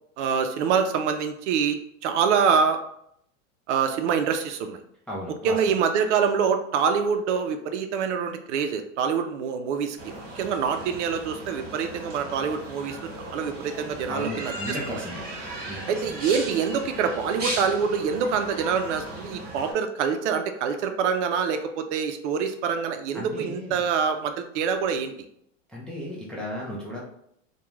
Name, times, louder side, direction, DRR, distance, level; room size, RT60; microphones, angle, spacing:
voice 1, 0.2-1.8 2.0-2.8 3.7-4.8 5.4-13.0 13.2-14.8 15.9-25.1, right 6 dB, 70° right, 7 dB, 0.5 m, -25 dB
voice 2, 5.1-5.8 14.1-15.3 15.7-16.1 23.1-23.8 25.7-27.0, equal, 5° left, -6 dB, 0.4 m, -35 dB
sound 1, 10.0-19.7, right 1 dB, 25° right, 1.0 m, -37 dB
2.3 x 2.2 x 3.0 m, 0.71 s
hypercardioid pair, 120°, 38 cm